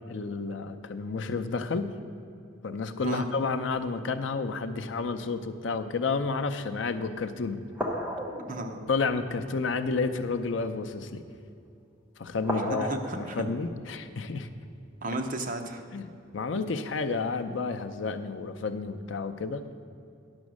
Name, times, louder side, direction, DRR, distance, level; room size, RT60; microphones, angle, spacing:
voice 1, 0.1-1.9 2.6-7.6 8.9-11.2 12.2-14.5 15.9-19.7, left 4 dB, 70° left, 10 dB, 0.5 m, -31 dB
sound 1, 4.0-5.0 5.5-5.8 6.7-6.8 7.7-11.3 11.8-12.1 12.4-15.9 16.6-16.7, equal, 10° right, 1.0 m, -38 dB
voice 2, 8.5-8.8 12.5-13.5 15.0-15.8, right 2 dB, 45° right, 4 dB, 0.8 m, -34 dB
10.5 x 6.2 x 6.2 m, 2.5 s
head